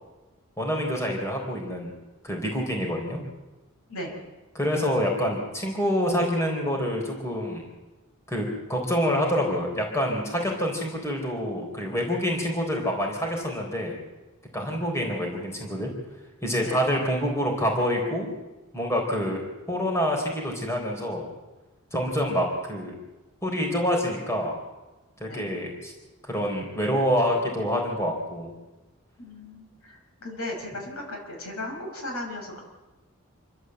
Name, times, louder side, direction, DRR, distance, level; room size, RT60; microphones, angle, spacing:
voice 1, 0.6-1.9 2.2-3.2 4.5-7.7 8.3-14.0 14.5-15.9 16.4-18.3 18.7-19.4 19.7-21.3 21.9-22.9 23.4-24.5 25.2-25.9 26.3-28.5, equal, 15° left, 0 dB, 4.0 m, -27 dB
voice 2, 29.2-30.0 30.2-32.6, left 1 dB, 85° left, 2 dB, 5.9 m, -36 dB
28.0 x 12.5 x 7.9 m, 1.1 s
head